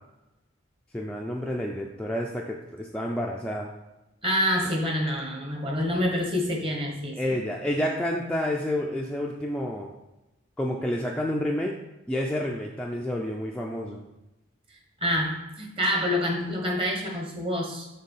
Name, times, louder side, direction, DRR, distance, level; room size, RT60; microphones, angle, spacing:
voice 1, 0.9-3.7 7.1-9.9 10.6-11.8 12.1-14.1, left 1 dB, 5° left, -2 dB, 0.4 m, -29 dB
voice 2, 4.2-7.4 14.7-17.9, equal, 25° right, 1 dB, 1.1 m, -27 dB
6.6 x 4.0 x 5.4 m, 0.98 s
head